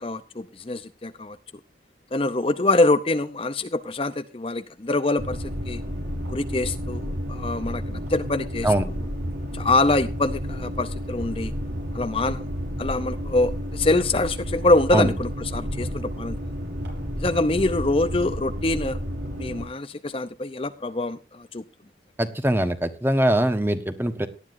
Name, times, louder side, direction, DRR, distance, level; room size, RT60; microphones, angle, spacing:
voice 1, 0.0-1.4 2.1-5.8 6.3-8.7 9.5-11.5 11.9-12.4 12.8-16.4 17.2-19.0 19.3-21.6, left 2 dB, 30° left, 10 dB, 0.6 m, -24 dB
sound 1, 5.2-19.7, equal, 75° right, 5.9 m, -31 dB
voice 2, 22.2-24.3, right 1 dB, 10° right, 9 dB, 1.2 m, -22 dB
18.5 x 11.5 x 2.6 m, 0.30 s
head